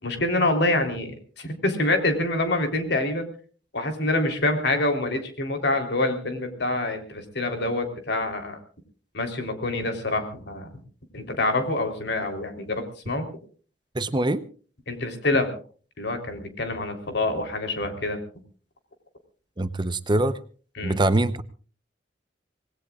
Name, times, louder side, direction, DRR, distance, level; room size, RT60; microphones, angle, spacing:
voice 1, 0.0-3.3 3.7-8.6 9.1-10.7 11.1-13.3 14.9-15.5 16.0-18.2 20.8-21.0, left 2 dB, 65° left, 6 dB, 3.6 m, -26 dB
voice 2, 13.9-14.4 19.6-20.4 20.8-21.4, right 2 dB, 25° right, 13 dB, 0.8 m, -23 dB
26.0 x 19.5 x 2.4 m, 0.40 s
head